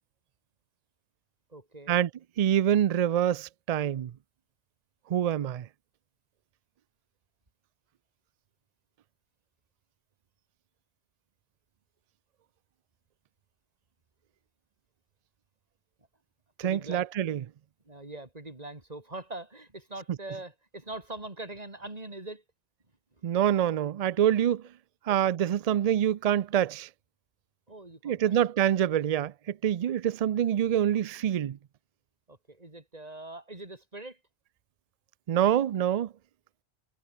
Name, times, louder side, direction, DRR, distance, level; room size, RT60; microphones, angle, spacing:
voice 1, 1.5-2.0 16.6-17.1 17.9-22.4 25.1-25.2 27.7-28.4 32.3-34.2, right 2 dB, 35° right, 3.3 m, -42 dB
voice 2, 2.4-4.1 5.1-5.7 16.6-17.4 23.2-24.6 25.1-26.9 28.0-31.6 35.3-36.1, right 10 dB, 70° right, 0.3 m, -26 dB
omnidirectional pair, 1.2 m